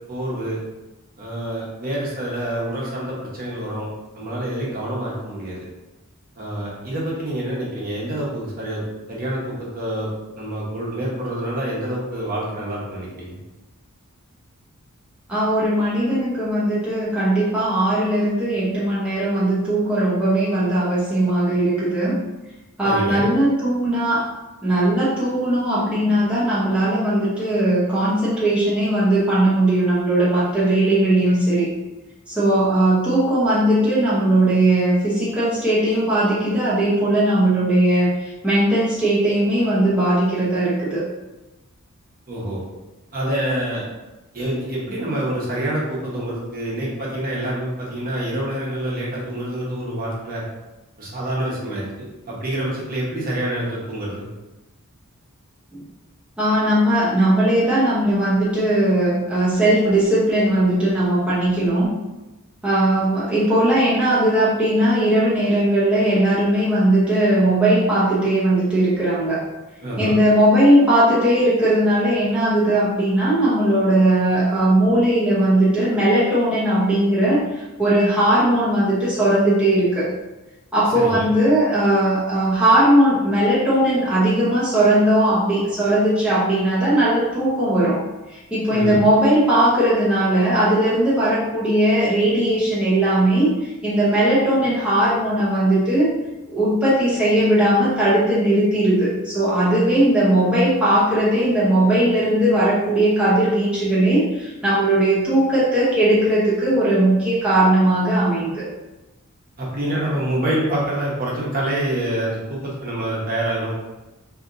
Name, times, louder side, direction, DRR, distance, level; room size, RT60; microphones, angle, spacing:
voice 1, 0.1-0.6 1.2-3.9 4.1-5.7 6.4-8.8 9.1-10.1 10.4-13.4 22.8-23.3 42.3-42.6 43.1-43.8 44.3-50.4 51.0-54.2 69.8-70.1 80.9-81.3 88.7-89.0 109.6-113.7, right 1 dB, 40° right, -5 dB, 1.1 m, -26 dB
voice 2, 15.3-22.2 22.8-24.2 24.6-31.7 32.3-41.0 55.7-55.8 56.4-61.9 62.6-69.4 70.0-80.1 80.7-88.0 88.3-96.1 96.5-108.6, right 1 dB, 5° right, -10 dB, 0.7 m, -18 dB
4.1 x 2.9 x 2.6 m, 1.1 s
head